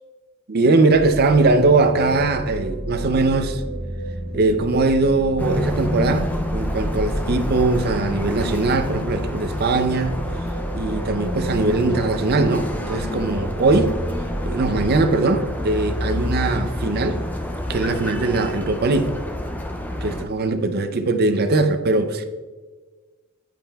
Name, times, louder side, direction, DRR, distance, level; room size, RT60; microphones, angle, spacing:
voice 1, 0.5-3.6 4.3-10.2 10.7-14.0 14.5-17.2 17.7-19.1 20.0-22.2, right 3 dB, 45° right, 0.5 m, -20 dB
sound 1, 0.9-15.1, right 1 dB, 75° right, 1.8 m, -31 dB
sound 2, 5.4-20.2, left 1 dB, 10° left, 0.4 m, -28 dB
10.0 x 5.5 x 2.3 m
head